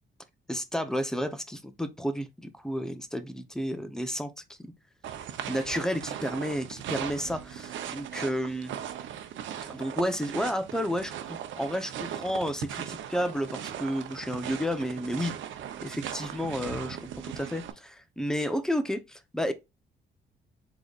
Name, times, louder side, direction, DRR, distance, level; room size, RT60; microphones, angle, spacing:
voice 1, 0.5-4.7 5.5-8.7 9.7-15.3 15.8-17.0 17.2-19.5, equal, 5° left, 0.9 m, -31 dB
sound 1, 5.0-17.7, right 9 dB, 75° right, 0.8 m, -38 dB
4.9 x 3.9 x 2.5 m
cardioid pair, 90°, 20 cm